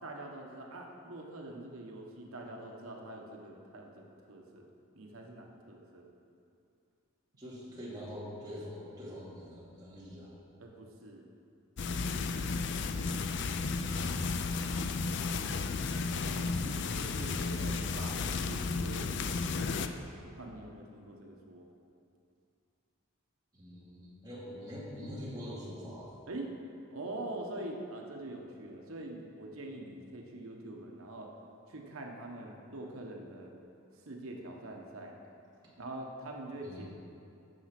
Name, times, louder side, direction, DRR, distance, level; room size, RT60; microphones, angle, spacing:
voice 1, 0.0-4.7 4.9-6.1 10.6-11.3 16.2-21.7 26.3-26.5 26.9-31.3 31.7-33.5 34.0-35.1 35.8-36.9, right 1 dB, 80° right, 1 dB, 1.1 m, -44 dB
voice 2, 7.4-10.4 23.5-26.2 36.6-36.9, equal, 20° right, -8 dB, 2.4 m, -44 dB
sound 1, 11.8-19.9, left 4 dB, 55° left, 0.4 m, -33 dB
9.5 x 5.9 x 6.0 m, 2.5 s
head